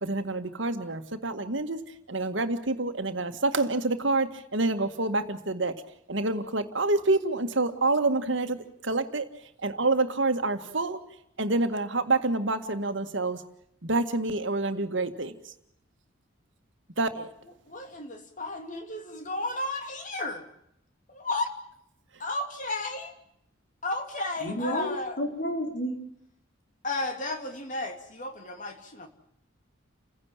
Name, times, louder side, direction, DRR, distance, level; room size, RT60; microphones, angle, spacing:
voice 1, 0.0-5.8 6.1-9.3 9.6-11.0 11.4-13.4 13.8-15.3 17.0-17.3, right 2 dB, 65° right, 7 dB, 1.9 m, -27 dB
voice 2, 17.7-20.4 21.1-21.5 22.2-23.1 23.8-25.2 26.8-29.1, left 2 dB, 40° left, 5 dB, 2.8 m, -33 dB
voice 3, 24.4-25.9, equal, 55° left, 3 dB, 4.8 m, -30 dB
30.0 x 16.5 x 7.4 m, 0.75 s
head